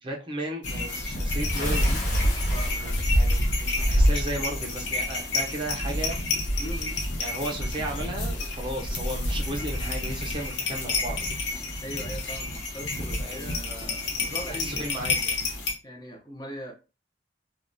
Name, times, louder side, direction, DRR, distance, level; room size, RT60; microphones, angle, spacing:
voice 1, 0.0-2.0 2.7-6.2 7.2-11.4 13.2-14.1 14.5-15.4, right 1 dB, 25° right, 0 dB, 0.5 m, -35 dB
sound 1, 0.6-15.7, left 1 dB, 70° left, 0.8 m, -27 dB
Bathtub (filling or washing) / Splash splatter, 1.4-3.9, left 1 dB, 45° left, 1.2 m, -37 dB
voice 2, 6.6-7.0 11.8-14.9 15.8-16.7, equal, 20° left, 1 dB, 0.6 m, -40 dB
3.2 x 2.3 x 2.6 m, 0.30 s
head